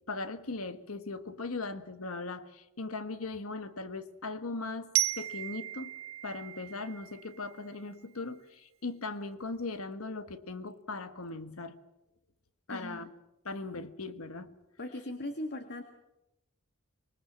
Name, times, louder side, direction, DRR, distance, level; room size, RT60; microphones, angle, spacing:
voice 1, 0.1-5.9 6.2-11.8 12.7-13.1 13.4-14.5, left 3 dB, 75° left, 11 dB, 1.4 m, -39 dB
Glockenspiel, 4.9-7.8, right 15 dB, 70° right, 0.8 m, -35 dB
voice 2, 12.7-13.0 14.8-15.8, left 1 dB, 50° left, 7 dB, 1.8 m, -38 dB
25.5 x 20.5 x 7.4 m, 0.92 s
head